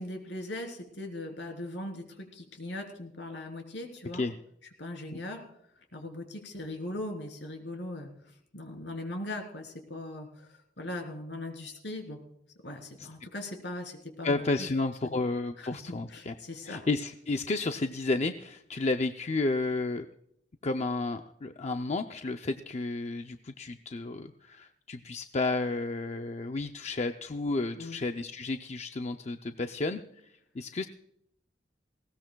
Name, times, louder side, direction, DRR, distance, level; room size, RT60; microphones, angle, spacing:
voice 1, 0.0-4.3 4.8-5.4 5.9-12.2 12.6-14.7 15.0-15.2 15.6-15.7 16.1-16.8 27.8-28.0, left 1 dB, 80° left, 3 dB, 3.5 m, -40 dB
voice 2, 14.2-16.3 16.6-20.1 20.6-30.0 30.5-30.9, left 3 dB, 40° left, 6 dB, 0.5 m, -32 dB
19.5 x 18.0 x 2.3 m, 0.75 s
head